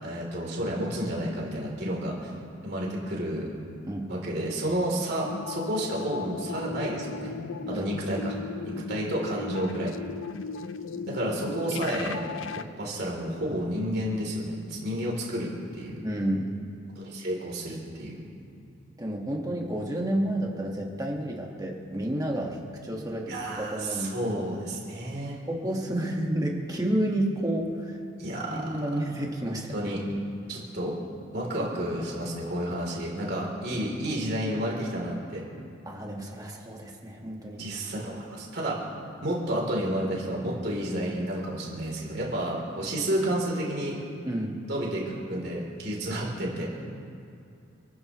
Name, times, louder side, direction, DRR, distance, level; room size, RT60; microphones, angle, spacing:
voice 1, 0.0-2.3 2.6-3.5 4.1-7.3 7.7-8.4 8.6-9.9 11.1-12.2 12.5-16.0 16.9-18.2 23.3-25.4 28.2-28.6 29.7-30.0 30.5-30.9 31.3-35.4 37.6-38.8 39.2-44.0 44.7-46.7, right 1 dB, 50° right, -3 dB, 3.4 m, -31 dB
voice 2, 3.8-4.2 7.6-7.9 8.2-8.3 8.7-8.8 10.9-11.0 16.0-16.5 19.0-22.6 22.8-24.4 25.5-28.0 28.5-29.9 35.8-37.7 44.2-44.6, right 1 dB, 20° right, -1 dB, 1.7 m, -30 dB
sound 1, 5.2-12.6, left 5 dB, 75° left, 0.5 m, -37 dB
28.0 x 14.0 x 3.2 m, 2.6 s
head